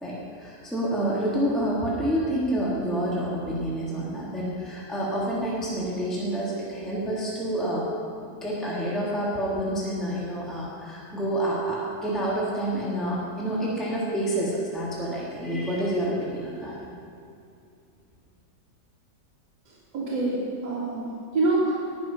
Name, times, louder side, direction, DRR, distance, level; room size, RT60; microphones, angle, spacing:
voice 1, 0.0-7.8 8.4-16.8, right 1 dB, ahead, -6 dB, 1.9 m, -28 dB
voice 2, 19.7-21.7, right 2 dB, 75° right, -9 dB, 2.7 m, -26 dB
18.0 x 6.3 x 5.7 m, 2.5 s
omnidirectional pair, 1.8 m